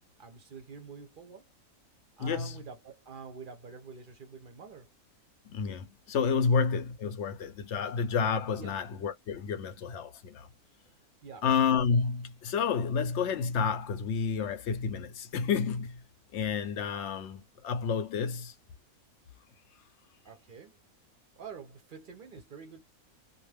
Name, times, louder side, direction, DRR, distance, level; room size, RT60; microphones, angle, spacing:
voice 1, 0.2-1.4 2.2-4.9 8.6-8.8 11.2-11.5 20.2-20.8 21.4-22.8, right 5 dB, 55° right, 0.6 m, -47 dB
voice 2, 2.2-2.6 5.5-10.5 11.4-16.0 16.3-18.5, left 6 dB, 65° left, 0.8 m, -30 dB
2.5 x 2.4 x 3.2 m
omnidirectional pair, 1.5 m